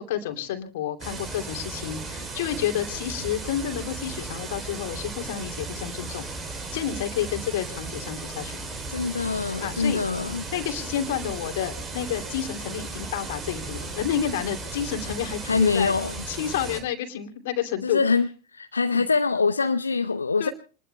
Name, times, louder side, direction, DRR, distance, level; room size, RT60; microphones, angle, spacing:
voice 1, 0.0-6.3 6.7-8.6 9.6-10.0 10.5-15.9 16.3-18.0 18.9-19.1 20.4-20.5, left 10 dB, 55° left, 2.8 m, -30 dB
sound 1, 1.0-16.8, right 3 dB, 25° right, 3.8 m, -36 dB
voice 2, 8.9-10.4 15.5-16.1 17.8-20.5, left 4 dB, 75° left, 0.7 m, -24 dB
28.5 x 20.5 x 2.3 m
figure-of-eight pair, 90°, 0 cm